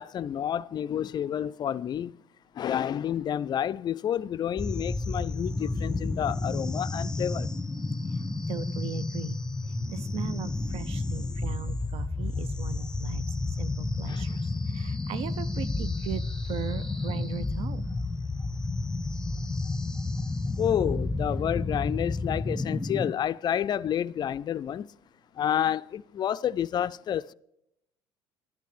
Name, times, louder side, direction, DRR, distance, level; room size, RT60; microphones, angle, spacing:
voice 1, 0.0-2.2 2.6-7.5 14.1-14.2 20.6-24.9 25.4-27.3, left 10 dB, 35° left, 0.4 m, -29 dB
sound 1, 4.6-23.1, left 3 dB, 5° left, 0.9 m, -31 dB
voice 2, 8.5-9.4 9.9-13.2 13.6-14.4 14.7-16.2 16.5-17.9, right 10 dB, 55° right, 0.5 m, -38 dB
11.5 x 10.5 x 4.8 m
hypercardioid pair, 65°, 12 cm